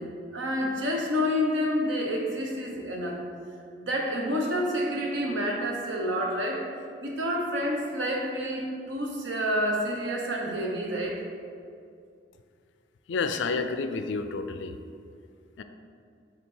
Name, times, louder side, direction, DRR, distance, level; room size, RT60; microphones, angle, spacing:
voice 1, 0.0-3.2 3.8-6.6 7.0-11.2, equal, 90° right, 0 dB, 1.0 m, -29 dB
voice 2, 13.1-14.8 15.6-15.7, left 4 dB, 85° left, 8 dB, 0.4 m, -30 dB
7.5 x 3.3 x 4.4 m, 2.3 s
head